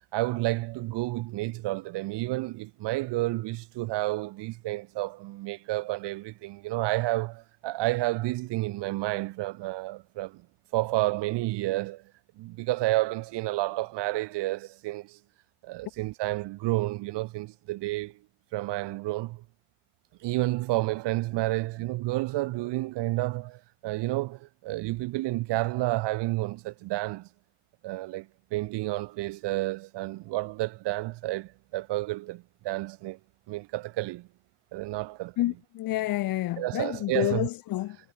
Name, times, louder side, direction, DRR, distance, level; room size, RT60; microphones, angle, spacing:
voice 1, 0.1-10.4 10.7-12.0 12.4-15.2 15.6-18.1 18.5-19.4 20.2-27.3 27.8-28.3 28.5-33.2 33.5-34.3 34.7-35.3 36.6-37.5, right 19 dB, 55° right, 2.4 m, -30 dB
voice 2, 35.4-38.0, left 16 dB, 45° left, 1.5 m, -29 dB
cardioid pair, 180°, 48 cm